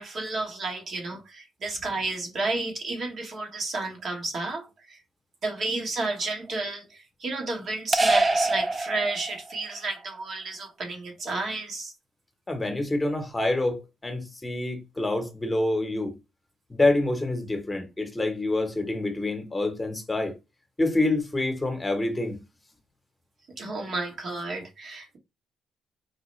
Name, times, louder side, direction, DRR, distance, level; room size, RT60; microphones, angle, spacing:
voice 1, 0.0-5.0 5.4-11.9 23.6-25.2, right 2 dB, 55° right, 1.2 m, -31 dB
sound 1, 7.9-9.6, right 2 dB, 25° right, 0.5 m, -24 dB
voice 2, 12.5-16.1 16.7-20.3 20.8-22.4, left 2 dB, 20° left, 1.0 m, -27 dB
4.6 x 2.1 x 3.1 m
cardioid pair, 90°, 0 cm